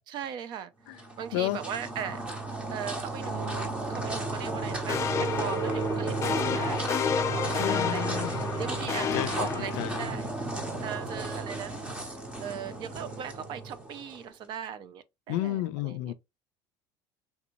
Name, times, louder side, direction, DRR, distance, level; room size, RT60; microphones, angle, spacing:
voice 1, 0.1-2.2 2.7-10.3 10.8-11.7 12.4-16.1, right 8 dB, 45° right, 0.4 m, -39 dB
sound 1, 0.9-14.2, right 3 dB, 10° right, 0.7 m, -33 dB
sound 2, 4.9-10.2, left 8 dB, 30° left, 0.4 m, -31 dB
voice 2, 7.6-8.4 9.1-9.5 9.8-10.1 15.3-16.1, left 15 dB, 90° left, 0.4 m, -31 dB
3.5 x 2.6 x 2.9 m
cardioid pair, 155°, 10 cm